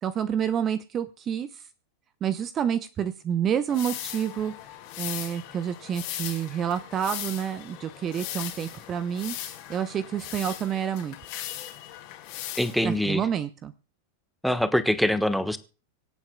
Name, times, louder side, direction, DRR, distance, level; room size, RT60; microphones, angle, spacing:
voice 1, 0.0-1.6 2.2-4.5 5.0-9.3 9.7-11.2 12.8-13.7, right 8 dB, 30° right, 13 dB, 0.9 m, -28 dB
sound 1, 3.7-13.0, left 12 dB, 45° left, 2.6 m, -38 dB
voice 2, 12.6-13.2 14.4-15.6, equal, ahead, 10 dB, 1.2 m, -24 dB
25.5 x 8.8 x 2.2 m, 0.36 s
figure-of-eight pair, 90°, 0 cm